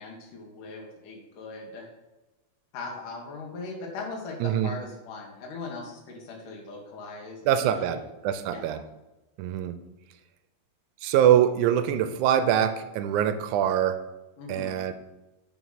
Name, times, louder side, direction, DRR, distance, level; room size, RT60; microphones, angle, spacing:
voice 1, 0.0-1.9 2.7-8.0 8.5-8.8 14.4-14.8, left 3 dB, 75° left, -1 dB, 3.1 m, -39 dB
voice 2, 4.4-4.7 7.5-8.8 9.4-9.8 11.0-14.0 14.5-14.9, right 10 dB, 80° right, 11 dB, 1.9 m, -24 dB
8.1 x 4.9 x 5.7 m, 1.0 s
omnidirectional pair, 3.8 m